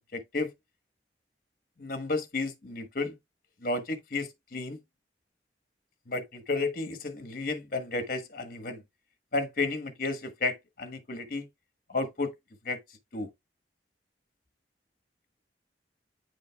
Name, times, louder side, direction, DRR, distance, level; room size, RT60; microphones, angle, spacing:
voice 1, 0.1-0.5 1.8-3.2 3.6-4.8 6.1-8.8 9.3-11.5 11.9-12.3 12.6-12.8 13.1-13.3, left 3 dB, 50° left, 1.3 m, -32 dB
9.2 x 5.1 x 2.3 m
head